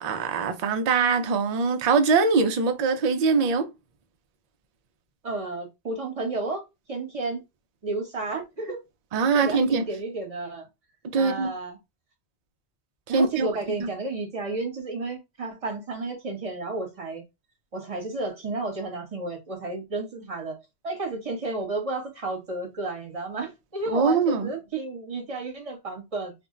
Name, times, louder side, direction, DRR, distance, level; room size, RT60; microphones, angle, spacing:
voice 1, 0.0-3.7 9.1-9.8 11.1-11.5 13.1-13.5 13.8-13.9 23.9-24.5, right 4 dB, 50° right, 0.5 m, -22 dB
voice 2, 5.2-7.4 7.8-8.8 9.3-10.7 11.2-11.8 13.1-17.2 17.7-20.6 20.8-26.3, right 3 dB, 35° right, 1.0 m, -32 dB
2.5 x 2.0 x 3.6 m
omnidirectional pair, 1.1 m